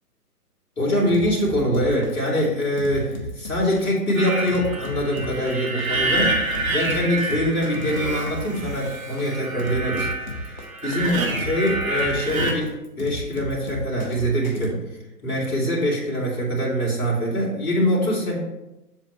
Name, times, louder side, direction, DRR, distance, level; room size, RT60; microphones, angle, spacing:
voice 1, 0.8-6.4 6.7-12.7 13.0-14.8 15.2-18.4, equal, 60° left, -3 dB, 2.8 m, -24 dB
sound 1, 1.1-14.7, left 2 dB, 30° left, 0.7 m, -34 dB
sound 2, 4.1-12.5, right 2 dB, 55° right, 1.4 m, -28 dB
7.4 x 6.4 x 3.2 m, 0.95 s
figure-of-eight pair, 140°, 48 cm